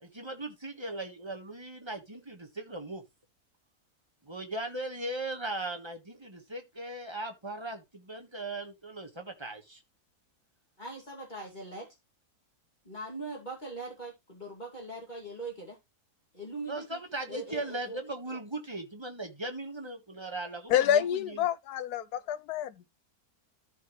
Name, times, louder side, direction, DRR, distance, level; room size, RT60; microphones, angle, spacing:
voice 1, 0.0-3.0 4.2-9.8 16.7-21.4, right 2 dB, 20° right, 1.5 m, -38 dB
voice 2, 10.8-11.9 12.8-15.8 16.3-17.0 17.3-18.0 18.3-18.4, right 2 dB, 30° left, 2.8 m, -41 dB
voice 3, 20.7-23.0, left 10 dB, 80° left, 1.2 m, -28 dB
13.5 x 5.6 x 3.3 m
omnidirectional pair, 1.7 m